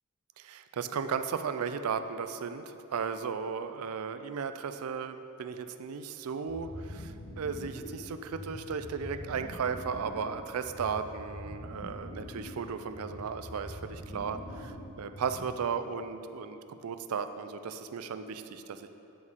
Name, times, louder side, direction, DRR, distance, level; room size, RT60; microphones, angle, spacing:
voice 1, 0.4-2.6 2.9-18.9, right 6 dB, 75° right, 10 dB, 0.4 m, -35 dB
sound 1, 6.5-15.7, left 1 dB, 75° left, 1.2 m, -44 dB
9.2 x 6.3 x 3.6 m, 2.9 s
head